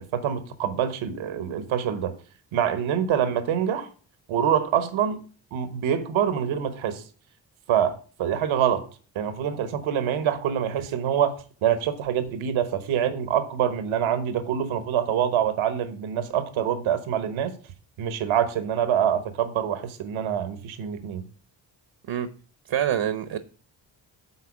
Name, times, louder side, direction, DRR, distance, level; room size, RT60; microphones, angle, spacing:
voice 1, 0.0-2.1 2.5-3.9 4.3-5.2 5.5-7.0 7.7-8.9 9.1-11.4 11.6-17.5 18.0-21.2, right 9 dB, 80° right, 1.2 m, -25 dB
voice 2, 22.7-23.4, right 10 dB, 60° right, 1.0 m, -26 dB
8.5 x 4.2 x 7.2 m
supercardioid pair, 50°, 47 cm